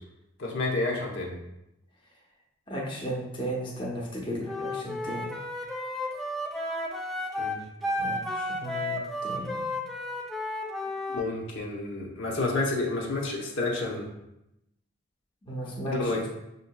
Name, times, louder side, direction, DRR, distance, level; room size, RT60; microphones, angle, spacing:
voice 1, 0.4-1.3 7.4-7.6 11.1-14.1 15.8-16.2, left 2 dB, 75° left, -2 dB, 0.8 m, -30 dB
voice 2, 2.7-5.4 8.0-9.7 15.5-16.3, right 1 dB, 25° left, -4 dB, 0.7 m, -35 dB
Wind instrument woodwind instrument, 4.5-11.3, left 1 dB, ahead, 0.4 m, -33 dB
6.4 x 2.7 x 2.2 m, 0.86 s
head